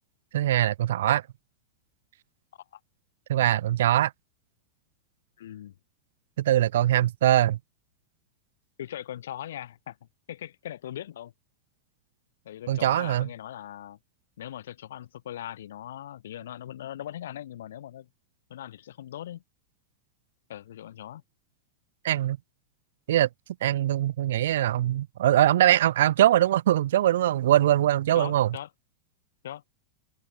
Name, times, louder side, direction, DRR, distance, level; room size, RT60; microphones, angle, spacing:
voice 1, 0.3-1.2 3.3-4.1 6.4-7.6 12.7-13.3 22.0-22.4 23.1-23.3 23.6-28.6, right 12 dB, 60° right, 0.4 m, -22 dB
voice 2, 5.4-5.8 8.8-11.3 12.4-14.0 14.4-18.1 18.5-19.4 20.5-21.2 28.1-28.7 29.4-29.6, left 11 dB, 60° left, 4.0 m, -40 dB
figure-of-eight pair, 90°, 0 cm